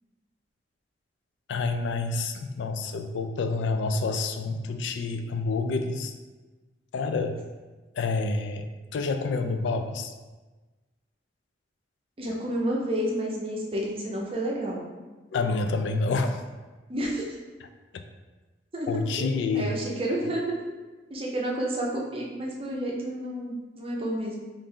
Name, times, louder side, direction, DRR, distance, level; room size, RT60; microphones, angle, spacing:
voice 1, 1.5-6.1 6.9-7.4 8.0-8.7 8.9-10.1 15.3-16.4 18.9-19.7, left 3 dB, 80° left, 8 dB, 0.3 m, -28 dB
voice 2, 12.2-14.8 16.9-17.2 18.7-18.9 19.2-20.6 21.1-24.4, right 1 dB, 30° right, -3 dB, 0.6 m, -30 dB
3.2 x 2.6 x 3.6 m, 1.2 s
head